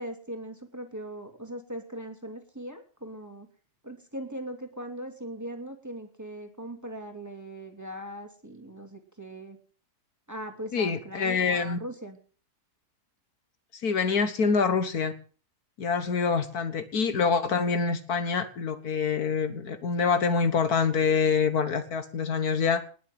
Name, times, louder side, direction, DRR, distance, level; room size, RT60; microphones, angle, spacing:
voice 1, 0.0-3.5 3.8-9.6 10.3-12.2, right 1 dB, 10° right, 4 dB, 2.6 m, -40 dB
voice 2, 10.7-11.8 13.8-15.1 15.8-22.8, left 5 dB, 70° left, 11 dB, 1.8 m, -26 dB
20.0 x 7.0 x 7.8 m, 0.41 s
omnidirectional pair, 1.7 m